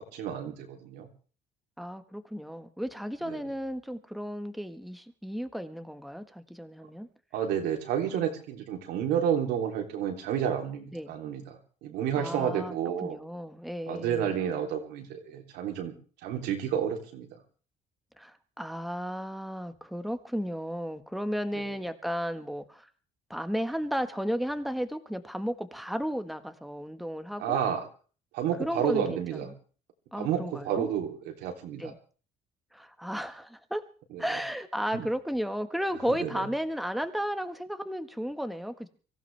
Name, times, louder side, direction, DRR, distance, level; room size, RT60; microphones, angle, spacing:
voice 1, 0.1-1.1 3.2-3.4 7.3-13.2 13.9-15.9 16.2-17.3 27.4-27.9 28.3-29.5 30.1-31.9 34.1-34.2 34.9-35.1 36.2-36.4, right 9 dB, 90° right, 2 dB, 3.4 m, -30 dB
voice 2, 1.8-7.1 10.9-11.1 12.2-12.7 13.0-14.4 18.2-22.9 23.3-27.6 28.6-29.4 30.1-30.9 31.8-32.0 32.7-33.8 34.2-38.9, equal, ahead, 8 dB, 1.5 m, -34 dB
24.0 x 15.5 x 3.4 m, 0.40 s
cardioid pair, 110°, 17 cm